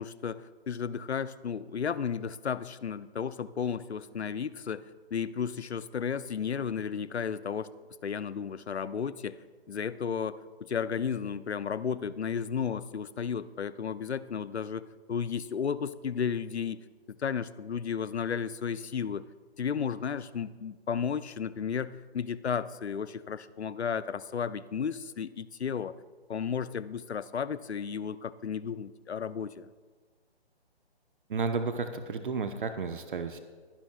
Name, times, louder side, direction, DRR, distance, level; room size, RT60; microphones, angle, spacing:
voice 1, 0.0-4.8 5.1-7.7 8.0-9.4 9.7-16.8 17.2-19.3 19.6-25.9 26.3-29.7, left 7 dB, 85° left, 16 dB, 0.6 m, -33 dB
voice 2, 31.3-33.4, right 4 dB, 50° right, 8 dB, 0.9 m, -32 dB
21.5 x 10.5 x 2.3 m, 1.5 s
figure-of-eight pair, 145°, 32 cm